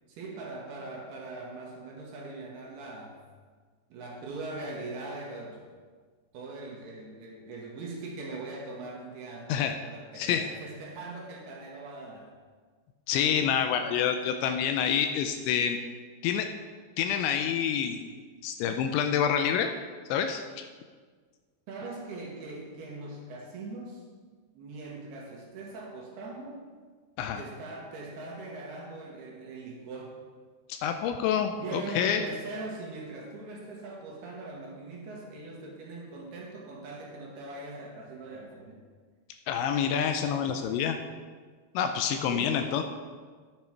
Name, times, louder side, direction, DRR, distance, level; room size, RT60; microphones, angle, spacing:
voice 1, 0.1-3.2 3.9-5.7 6.3-12.3 13.5-13.7 21.7-24.0 24.5-26.7 27.4-30.2 31.6-38.8 42.1-42.6, right 2 dB, 70° right, -2 dB, 2.8 m, -41 dB
voice 2, 10.2-10.5 13.1-15.8 16.2-16.5 17.0-18.0 18.4-19.7 20.1-20.7 27.2-27.4 30.7-32.3 39.5-41.0 41.8-42.8, left 8 dB, 80° left, 6 dB, 2.7 m, -27 dB
11.0 x 7.6 x 4.5 m, 1.5 s
omnidirectional pair, 5.5 m